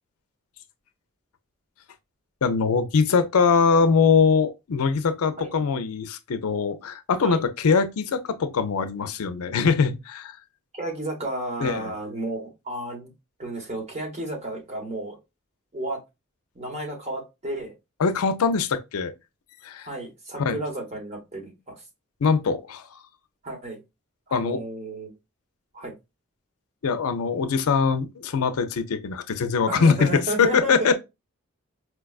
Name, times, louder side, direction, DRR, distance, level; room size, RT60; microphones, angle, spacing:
voice 1, 2.4-10.4 11.6-11.9 18.0-19.1 19.6-19.9 20.4-20.6 22.2-23.0 24.3-24.6 26.8-30.9, left 5 dB, 75° left, 0.5 m, -22 dB
voice 2, 10.7-13.1 13.4-15.2 15.7-16.0 16.5-17.7 19.8-21.8 23.4-23.8 24.3-25.1 25.7-26.0 29.7-30.9, right 1 dB, 30° right, 1.1 m, -32 dB
4.5 x 2.3 x 2.3 m
head